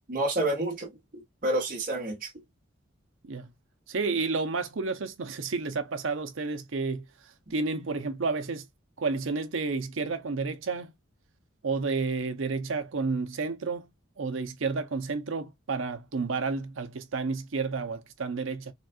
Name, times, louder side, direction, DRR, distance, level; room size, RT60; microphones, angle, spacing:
voice 1, 0.1-2.3, right 1 dB, 45° right, 1.3 m, -29 dB
voice 2, 3.9-7.0 7.5-8.7 9.0-10.9 11.6-13.9 14.2-18.7, right 4 dB, 80° right, 0.7 m, -31 dB
4.1 x 2.4 x 2.4 m
head